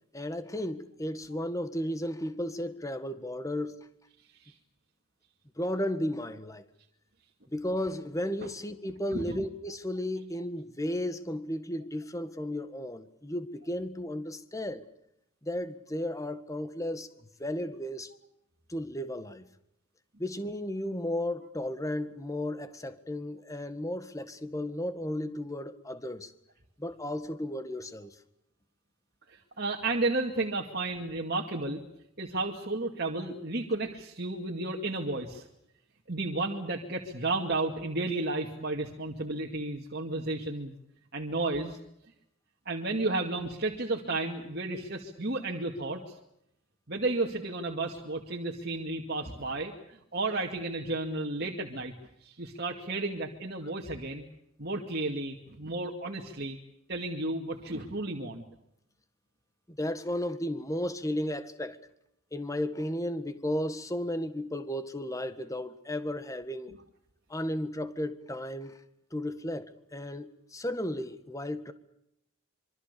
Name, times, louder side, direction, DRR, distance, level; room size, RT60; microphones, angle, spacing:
voice 1, 0.1-3.9 5.6-6.6 7.5-14.8 15.4-18.1 18.7-19.5 20.2-26.3 26.8-28.2 59.7-61.8 62.3-66.7 67.3-68.8 69.1-71.7, left 1 dB, 15° left, 1.6 m, -34 dB
voice 2, 9.1-9.4 29.3-31.8 32.2-35.4 36.1-40.7 41.1-41.8 42.7-46.1 46.9-51.9 52.2-54.3 54.6-56.6 56.9-58.4, right 2 dB, 50° right, 2.3 m, -32 dB
26.5 x 24.0 x 6.9 m
head